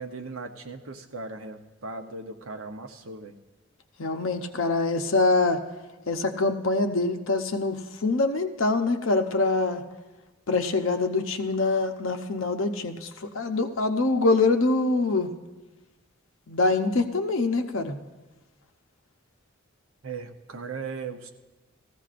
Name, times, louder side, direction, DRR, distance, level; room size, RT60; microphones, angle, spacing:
voice 1, 0.0-3.3 20.0-21.3, right 4 dB, 75° right, 6 dB, 0.8 m, -38 dB
voice 2, 4.0-5.6 6.1-9.8 10.5-15.3 16.5-18.0, left 3 dB, 70° left, 6 dB, 0.8 m, -24 dB
17.5 x 14.5 x 2.5 m, 1.2 s
head